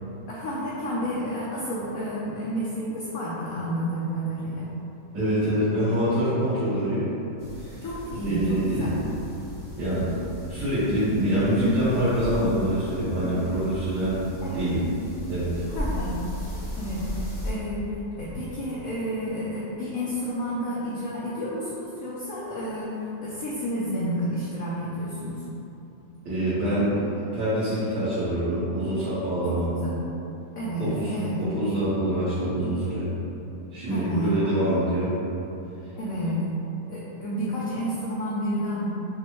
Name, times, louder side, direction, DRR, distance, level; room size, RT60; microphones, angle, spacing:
voice 1, 0.3-4.7 7.8-8.9 14.4-14.6 15.7-16.2 16.8-17.9 18.1-25.4 29.4-30.0 30.5-31.4 33.9-34.6 36.0-36.4 36.9-38.9, equal, 65° left, -7 dB, 0.9 m, -30 dB
voice 2, 5.1-7.1 7.6-7.8 8.2-9.0 9.8-10.1 10.5-14.2 14.5-14.8 15.3-15.6 26.2-29.7 30.8-33.1 33.7-35.1, right 1 dB, 75° right, -15 dB, 1.8 m, -25 dB
sound 1, 7.4-17.5, left 1 dB, 15° left, 0.6 m, -37 dB
6.0 x 2.2 x 3.0 m, 3.0 s
omnidirectional pair, 1.8 m